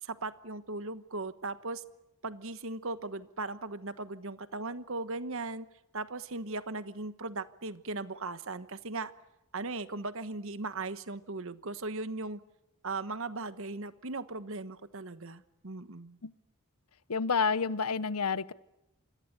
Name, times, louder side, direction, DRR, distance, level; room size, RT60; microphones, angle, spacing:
voice 1, 0.0-1.8 2.2-5.7 5.9-9.1 9.5-12.4 12.8-16.2, right 3 dB, 60° right, 1.2 m, -38 dB
voice 2, 17.1-18.5, left 5 dB, 85° left, 0.9 m, -29 dB
27.5 x 22.0 x 8.1 m
head